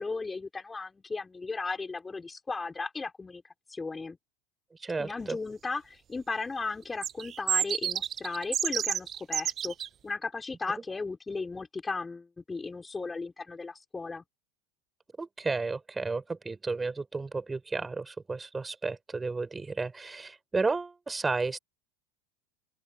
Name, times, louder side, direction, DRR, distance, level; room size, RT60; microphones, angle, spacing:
voice 1, 0.0-3.4 3.7-4.2 5.0-9.7 10.0-14.2, left 4 dB, 15° left, 4.5 m, -36 dB
voice 2, 4.8-5.4 15.2-21.6, right 3 dB, 15° right, 5.9 m, -32 dB
sound 1, 7.0-9.9, right 9 dB, 35° right, 0.5 m, -30 dB
open air
hypercardioid pair, 80°, 0 cm